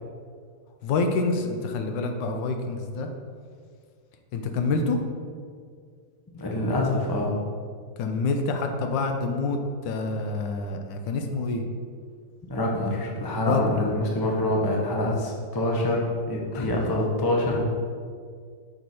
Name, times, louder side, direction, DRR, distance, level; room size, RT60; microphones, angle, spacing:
voice 1, 0.8-3.1 4.3-5.0 8.0-11.6 13.4-13.9 16.5-16.7, left 3 dB, 80° left, 5 dB, 1.4 m, -27 dB
voice 2, 6.3-7.4 12.5-17.6, left 1 dB, 35° left, -1 dB, 0.3 m, -25 dB
6.4 x 4.2 x 4.7 m, 2.1 s
omnidirectional pair, 2.0 m